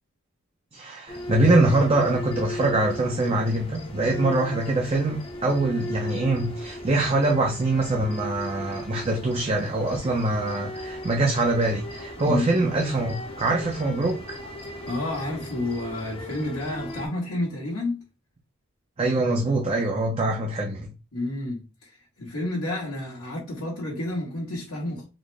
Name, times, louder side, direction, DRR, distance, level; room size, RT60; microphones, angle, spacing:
voice 1, 0.7-14.4 19.0-20.9, right 2 dB, 30° right, 0.5 m, -24 dB
sound 1, 1.1-17.1, left 1 dB, 25° left, 0.6 m, -37 dB
voice 2, 12.2-12.7 14.6-18.0 21.1-25.1, left 2 dB, 80° left, 1.3 m, -30 dB
4.0 x 2.1 x 3.3 m
head